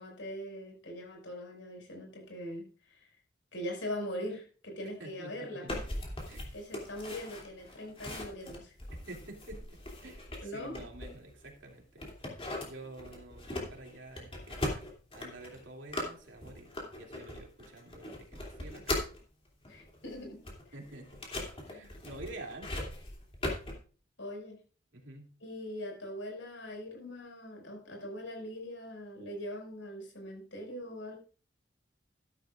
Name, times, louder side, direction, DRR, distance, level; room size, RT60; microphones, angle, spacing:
voice 1, 0.0-3.1 3.5-5.7 6.5-8.7 10.4-10.8 19.7-20.4 24.2-24.6 25.4-31.2, left 1 dB, 85° left, 1 dB, 5.6 m, -41 dB
voice 2, 5.0-5.9 6.3-6.5 8.9-12.0 12.6-19.0 20.7-21.2 21.6-22.9 24.9-25.3, right 2 dB, 80° right, 1 dB, 2.8 m, -49 dB
sound 1, 5.7-11.5 12.0-19.2 19.6-23.8, left 1 dB, 30° left, 2.9 m, -39 dB
13.5 x 11.0 x 2.5 m, 0.37 s
head